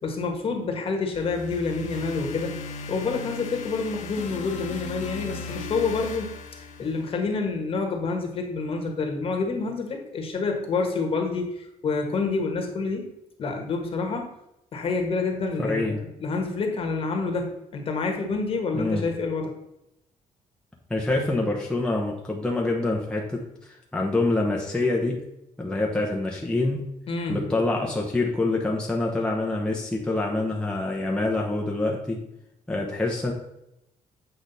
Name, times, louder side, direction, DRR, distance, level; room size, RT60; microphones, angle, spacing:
voice 1, 0.0-2.6 2.9-6.3 6.8-13.1 13.4-14.3 14.7-19.5 27.1-27.4, left 4 dB, 45° left, 3 dB, 1.5 m, -28 dB
sound 1, 1.1-7.3, left 4 dB, 60° left, 1.0 m, -37 dB
voice 2, 15.6-16.0 18.7-19.0 20.9-25.2 25.6-26.8 27.3-32.2 32.7-33.3, left 2 dB, 5° left, -2 dB, 0.9 m, -26 dB
8.3 x 5.0 x 4.1 m, 0.85 s
cardioid pair, 150°, 14 cm